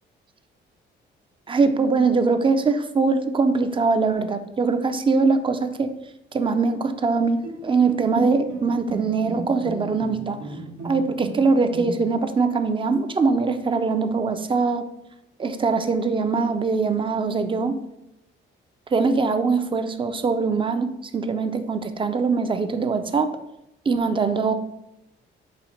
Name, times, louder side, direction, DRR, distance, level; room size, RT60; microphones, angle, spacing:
voice 1, 1.5-5.9 6.3-10.4 10.8-14.9 15.4-17.8 18.9-23.3 23.9-24.5, right 4 dB, 25° right, 8 dB, 0.4 m, -22 dB
Bowed string instrument, 7.4-12.3, right 2 dB, 85° right, 1.1 m, -34 dB
4.0 x 2.8 x 4.3 m, 0.85 s
cardioid pair, 90°, 20 cm